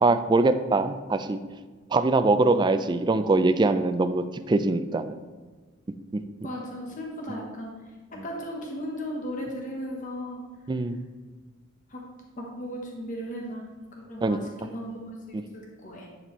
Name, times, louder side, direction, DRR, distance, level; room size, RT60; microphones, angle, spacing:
voice 1, 0.0-1.4 1.9-5.2 6.1-6.2 10.7-11.0 14.2-14.4, right 3 dB, 20° right, 10 dB, 0.3 m, -23 dB
voice 2, 6.4-7.7 8.1-10.4 11.9-12.1 12.4-13.6 13.9-15.0 15.3-16.1, equal, 40° left, 0 dB, 1.0 m, -36 dB
11.0 x 4.2 x 3.1 m, 1.4 s
head